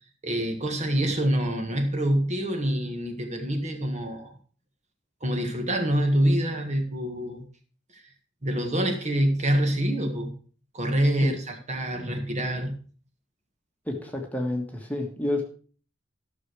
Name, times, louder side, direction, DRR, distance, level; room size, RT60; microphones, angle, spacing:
voice 1, 0.2-4.3 5.2-7.4 7.9-8.0 8.4-10.3 10.7-12.8, right 1 dB, 35° right, 4 dB, 1.8 m, -26 dB
voice 2, 13.9-15.4, left 1 dB, 10° left, 2 dB, 1.5 m, -30 dB
13.5 x 6.5 x 4.8 m, 0.42 s
head